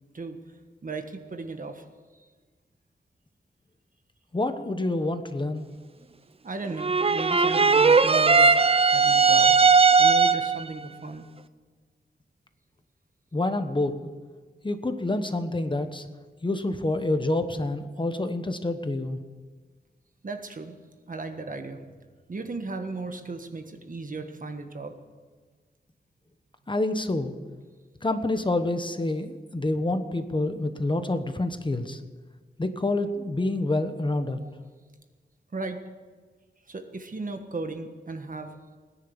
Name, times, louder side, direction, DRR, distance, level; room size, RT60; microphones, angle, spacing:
voice 1, 0.8-1.9 2.1-2.3 6.4-8.6 8.9-9.6 10.0-11.3 20.2-20.8 21.1-22.0 22.3-25.0 34.4-34.5 35.5-35.8 36.7-38.6, right 3 dB, 50° right, 7 dB, 1.5 m, -36 dB
voice 2, 4.3-5.7 13.3-13.9 14.6-16.1 16.4-19.2 26.7-27.3 28.0-32.0 32.6-34.4, left 2 dB, 25° left, 8 dB, 1.1 m, -27 dB
sound 1, 6.8-10.6, right 5 dB, 35° right, 0.5 m, -18 dB
19.0 x 10.5 x 7.2 m, 1.4 s
wide cardioid pair, 95°, 18 cm